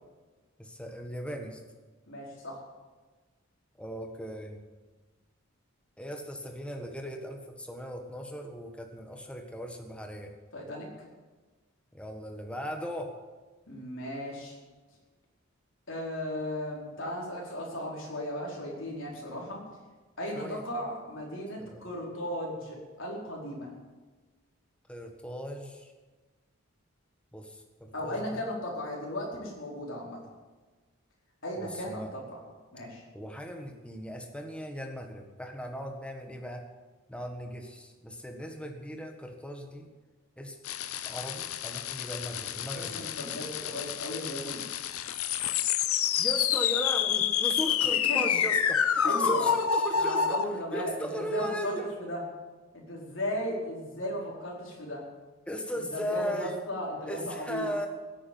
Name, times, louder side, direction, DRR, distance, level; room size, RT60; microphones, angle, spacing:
voice 1, 0.6-1.6 3.8-4.6 6.0-10.3 11.9-13.1 20.3-20.8 21.6-21.9 24.9-25.9 27.3-28.4 31.6-32.1 33.1-36.6 37.1-39.9 40.4-40.6 41.0-43.1 46.2-50.4 50.7-51.9 55.5-56.6 57.1-57.9, equal, 5° left, 3 dB, 1.5 m, -37 dB
voice 2, 2.1-2.6 10.5-10.9 13.7-14.6 15.9-19.6 20.2-23.7 27.9-30.2 31.4-32.4 32.7-33.0 42.9-44.8 48.1-48.2 49.0-49.5 49.9-52.2 52.7-55.0 55.7-57.6, left 1 dB, 60° left, -3 dB, 4.8 m, -36 dB
sound 1, 40.7-50.4, left 8 dB, 85° left, 0.8 m, -28 dB
16.0 x 8.9 x 9.4 m, 1.3 s
head